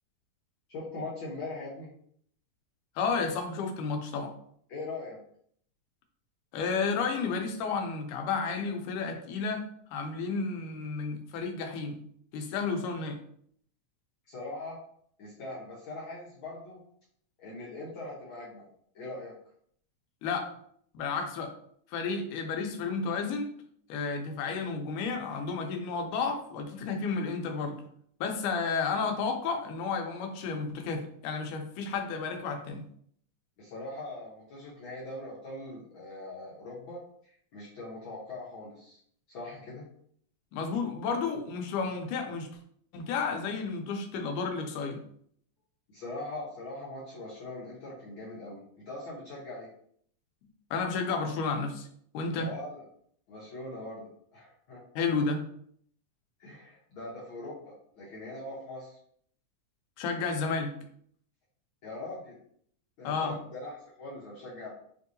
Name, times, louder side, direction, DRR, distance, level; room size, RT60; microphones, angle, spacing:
voice 1, 0.7-1.9 4.7-5.2 14.3-14.8 15.2-16.8 17.4-18.7 18.9-19.3 33.6-39.0 39.3-39.9 45.9-49.7 52.4-52.8 53.3-54.8 56.4-59.0 61.8-62.4 63.0-64.7, left 2 dB, 70° left, -6 dB, 1.2 m, -41 dB
voice 2, 3.0-4.3 6.5-9.6 9.9-12.0 12.3-13.2 20.2-20.5 20.9-21.5 21.9-23.5 23.9-27.8 28.2-32.9 40.5-42.5 42.9-45.0 50.7-51.9 52.1-52.5 55.0-55.5 60.0-60.7 63.0-63.4, left 4 dB, 85° left, 4 dB, 2.2 m, -32 dB
6.2 x 2.7 x 2.6 m, 0.64 s
omnidirectional pair, 3.5 m